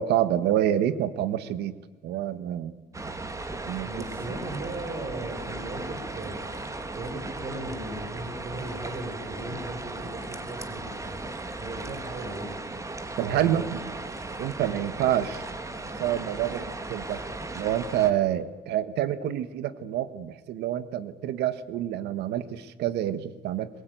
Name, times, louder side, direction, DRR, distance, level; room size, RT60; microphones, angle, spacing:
voice 1, 0.0-1.7 2.0-2.8 3.7-3.9 13.2-13.8 14.4-15.4 16.0-17.2 17.5-23.7, right 11 dB, 80° right, 14 dB, 1.4 m, -27 dB
sound 1, 2.9-18.1, right 2 dB, 20° right, 2.2 m, -37 dB
voice 2, 3.8-11.2 11.6-12.6 13.3-13.7, right 2 dB, 40° right, 3 dB, 4.8 m, -38 dB
22.0 x 21.5 x 9.3 m, 1.3 s
cardioid pair, 110°, 17 cm